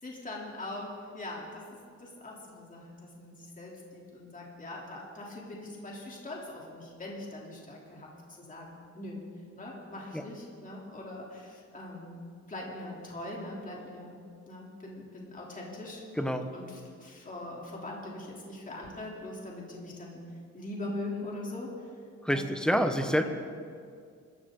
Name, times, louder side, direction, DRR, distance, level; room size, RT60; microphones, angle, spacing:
voice 1, 0.0-1.7 2.0-9.2 9.5-14.2 14.5-20.2 20.5-21.7 22.3-22.4 22.7-22.8, left 2 dB, 30° left, -3 dB, 3.3 m, -42 dB
voice 2, 16.1-16.5 22.2-23.2, equal, 5° left, 6 dB, 1.2 m, -27 dB
26.0 x 14.5 x 3.9 m, 2.2 s
cardioid pair, 120°, 29 cm